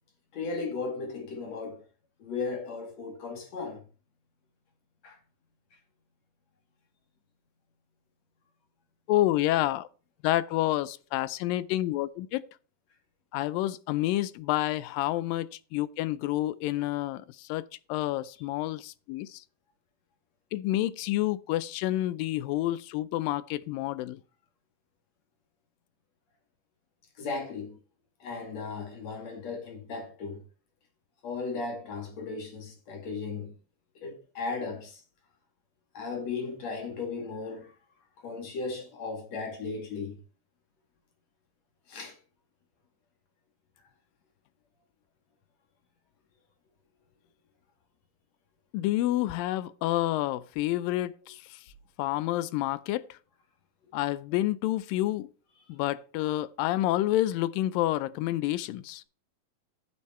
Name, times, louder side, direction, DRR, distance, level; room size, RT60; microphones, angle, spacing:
voice 1, 0.3-1.8 2.2-3.8 5.0-5.2 27.2-27.8 28.2-30.4 31.2-33.5 34.0-35.0 35.9-37.7 38.2-40.2 41.9-42.1, left 4 dB, 50° left, 3.2 m, -36 dB
voice 2, 9.1-9.9 10.2-12.4 13.3-19.4 20.5-24.2 48.7-51.4 52.0-53.0 53.9-55.3 55.7-59.0, left 15 dB, 80° left, 2.2 m, -29 dB
11.0 x 7.0 x 4.3 m
omnidirectional pair, 4.2 m